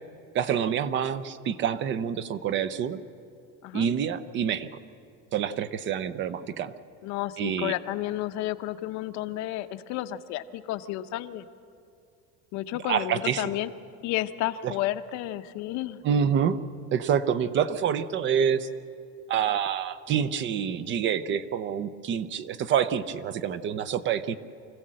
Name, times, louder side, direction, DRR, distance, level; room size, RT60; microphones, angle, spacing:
voice 1, 0.3-3.0 3.7-4.7 5.3-6.7 7.4-7.7 12.9-13.5 14.6-14.7 16.0-16.6 16.9-18.7 19.3-24.4, right 8 dB, 35° right, 14 dB, 0.6 m, -27 dB
voice 2, 7.0-11.4 12.5-13.7 14.0-16.0, left 14 dB, 55° left, 10 dB, 0.8 m, -31 dB
24.5 x 15.5 x 7.6 m, 2.5 s
cardioid pair, 165°, 33 cm